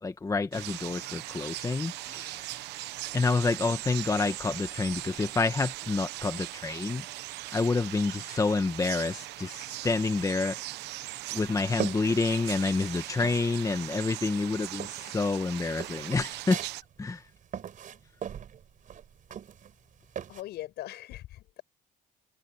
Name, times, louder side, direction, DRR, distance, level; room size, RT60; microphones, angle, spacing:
voice 1, 0.0-2.6 3.1-7.0 7.5-10.6 11.3-16.6 17.0-17.3, left 3 dB, 20° left, 1.5 m, -28 dB
sound 1, 0.5-16.8, right 17 dB, 85° right, 1.0 m, -39 dB
sound 2, 11.0-12.9 13.2-14.1 14.3-20.4, right 9 dB, 50° right, 5.0 m, -40 dB
voice 2, 20.3-21.6, left 15 dB, 75° left, 7.9 m, -40 dB
cardioid pair, 110°, 17 cm